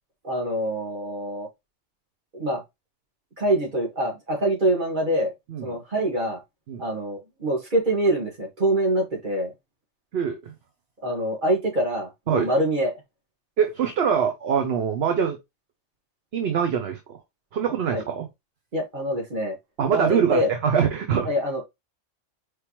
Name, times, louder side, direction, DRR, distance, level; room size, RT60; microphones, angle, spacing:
voice 1, 0.2-1.5 2.3-2.6 3.4-5.3 5.6-6.4 6.8-9.5 11.0-12.9 17.9-18.0 18.7-19.6 19.9-20.5 21.3-21.7, right 1 dB, 40° right, 1.9 m, -25 dB
voice 2, 13.6-15.4 16.3-17.2 17.5-18.3 19.8-21.3, right 7 dB, 60° right, 1.0 m, -23 dB
4.7 x 3.4 x 3.0 m
omnidirectional pair, 1.3 m